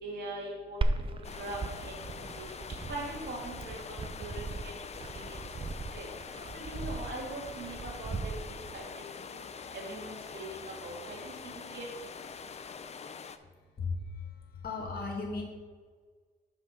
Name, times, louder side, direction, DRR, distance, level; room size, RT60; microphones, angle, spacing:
voice 1, 0.0-0.8 1.4-1.9 2.9-4.3 4.6-4.7 5.1-5.4 5.9-6.0 6.5-8.1 8.5-9.0 9.7-10.5 10.8-11.9, right 2 dB, 60° right, -3 dB, 2.5 m, -41 dB
Glass, 0.8-8.8, right 3 dB, 25° right, 0.5 m, -37 dB
sound 1, 1.2-13.4, left 6 dB, 35° left, 0.5 m, -44 dB
voice 2, 13.8-15.4, left 4 dB, 50° left, -1 dB, 2.4 m, -36 dB
6.3 x 5.7 x 5.7 m, 1.5 s
cardioid pair, 90°, 20 cm